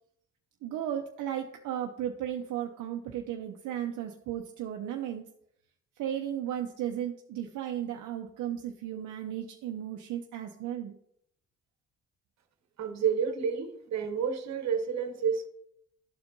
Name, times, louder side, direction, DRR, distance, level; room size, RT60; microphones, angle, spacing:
voice 1, 0.6-5.3 6.0-11.0, right 10 dB, 80° right, 3 dB, 0.6 m, -35 dB
voice 2, 12.8-15.5, right 7 dB, 60° right, 7 dB, 1.1 m, -30 dB
13.0 x 4.3 x 2.6 m, 0.72 s
cardioid pair, 90°, 30 cm